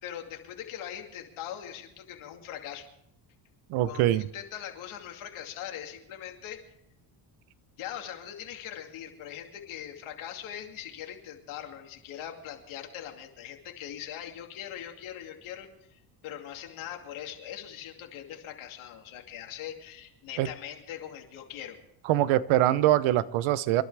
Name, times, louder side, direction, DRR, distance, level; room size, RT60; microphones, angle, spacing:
voice 1, 0.0-2.9 3.8-6.6 7.8-21.8, left 10 dB, 75° left, 2 dB, 2.7 m, -41 dB
voice 2, 3.7-4.3 20.4-20.5 22.1-23.8, right 14 dB, 75° right, 17 dB, 0.9 m, -23 dB
27.5 x 11.5 x 3.4 m, 0.81 s
cardioid pair, 100°, 49 cm